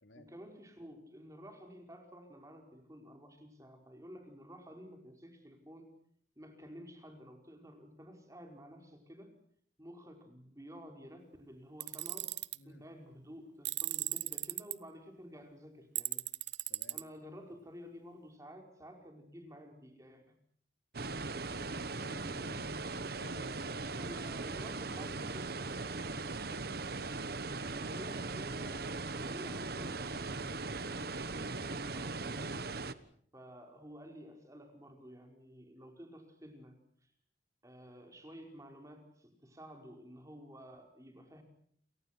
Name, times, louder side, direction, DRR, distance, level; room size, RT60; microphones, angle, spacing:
voice 1, 0.1-5.9 6.4-9.3 9.8-12.3 12.6-16.3 16.9-20.4 24.0-26.1 27.7-32.7 33.3-37.1 37.6-41.4, equal, 15° right, 4 dB, 5.1 m, -52 dB
Tools, 11.8-12.6 13.6-14.7 16.0-17.0, right 16 dB, 70° right, 1.0 m, -36 dB
voice 2, 12.5-12.8 16.7-17.0 21.5-24.1 26.5-26.7, left 2 dB, 90° left, 7 dB, 3.3 m, -55 dB
sound 1, 20.9-32.9, right 3 dB, 55° right, 1.3 m, -39 dB
30.0 x 24.5 x 6.1 m, 0.63 s
head